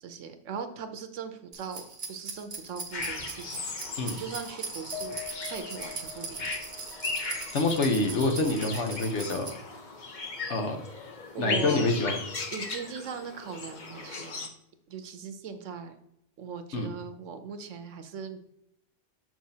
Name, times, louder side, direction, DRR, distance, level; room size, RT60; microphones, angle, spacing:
voice 1, 0.0-1.8 2.1-3.6 4.2-5.2 5.5-6.5 11.3-11.9 12.5-14.5 14.9-15.9 16.4-18.4, right 6 dB, 75° right, 8 dB, 1.0 m, -39 dB
sound 1, 1.5-9.5, right 4 dB, 35° right, 0.8 m, -40 dB
sound 2, 2.9-14.5, left 3 dB, 40° left, 0.8 m, -38 dB
Piano, 4.9-9.4 9.8-9.9 10.3-10.4, left 7 dB, 5° left, 1.0 m, -45 dB
voice 2, 7.5-9.5 10.5-10.8 11.4-12.2 16.7-16.9, left 2 dB, 65° left, 4 dB, 1.2 m, -26 dB
6.7 x 5.9 x 2.8 m, 0.80 s
omnidirectional pair, 1.3 m